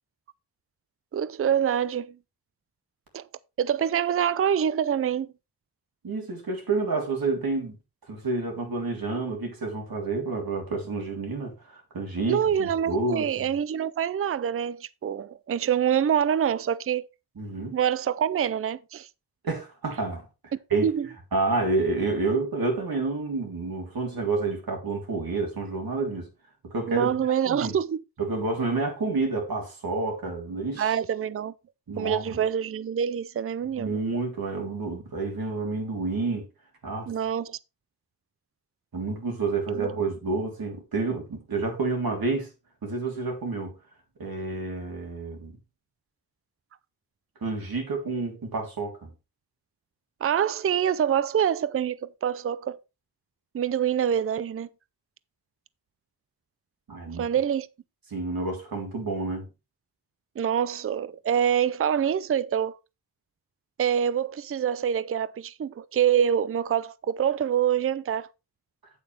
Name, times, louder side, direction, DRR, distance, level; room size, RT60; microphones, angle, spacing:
voice 1, 1.1-2.2 3.1-3.2 3.6-5.3 12.3-17.1 17.7-19.1 20.8-21.1 26.9-28.0 30.8-31.5 32.0-33.9 37.1-37.6 39.8-39.9 50.2-52.8 53.5-54.7 57.2-57.7 60.4-62.8 63.8-68.3, right 9 dB, 35° right, 0.5 m, -25 dB
voice 2, 6.0-7.8 8.1-13.5 17.3-17.8 19.4-20.9 21.3-26.3 26.6-27.7 28.2-30.9 31.9-32.4 33.8-36.5 36.8-37.1 38.9-42.5 42.8-43.7 44.2-45.5 47.4-49.1 56.9-57.3 58.1-59.5, right 3 dB, 65° right, 3.4 m, -29 dB
8.8 x 7.9 x 3.4 m
wide cardioid pair, 95°, 39 cm